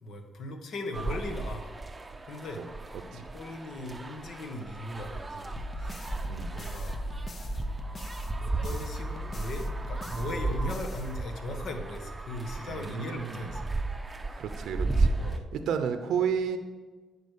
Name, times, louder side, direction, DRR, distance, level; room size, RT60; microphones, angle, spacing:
voice 1, 0.0-1.7 2.1-2.6 3.1-5.5 5.8-6.1 6.5-7.1 8.4-13.6 15.2-15.5, left 2 dB, 65° left, 5 dB, 1.3 m, -38 dB
sound 1, 0.9-15.4, right 3 dB, 20° right, 0.6 m, -34 dB
sound 2, 5.6-11.7, left 2 dB, 45° left, 0.7 m, -39 dB
voice 2, 12.7-13.5 14.4-15.2 15.5-16.6, right 7 dB, 75° right, 8 dB, 0.6 m, -32 dB
9.6 x 5.1 x 6.6 m, 1.3 s
cardioid pair, 90°, 0 cm